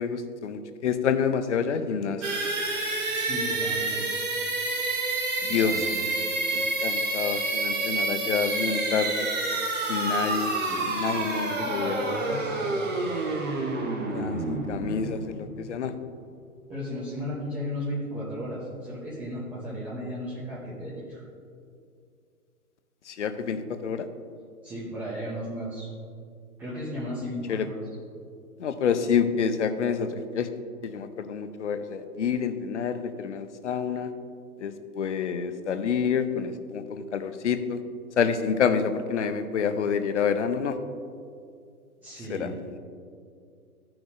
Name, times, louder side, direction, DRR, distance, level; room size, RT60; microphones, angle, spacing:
voice 1, 0.0-2.2 5.4-5.8 6.5-9.3 9.9-10.5 10.9-12.0 14.1-15.9 23.1-24.1 27.5-27.7 28.6-30.5 30.8-34.1 34.6-37.8 38.2-40.8 42.3-42.5, left 6 dB, 50° left, 9 dB, 0.7 m, -28 dB
sound 1, 2.2-15.9, right 2 dB, 55° right, 1.7 m, -28 dB
voice 2, 3.1-4.0 5.4-6.1 10.5-12.7 16.7-21.2 24.6-25.9 26.6-27.8 42.0-42.5, equal, 5° right, -10 dB, 0.5 m, -35 dB
16.0 x 6.0 x 2.6 m, 2.3 s
figure-of-eight pair, 120°, 45 cm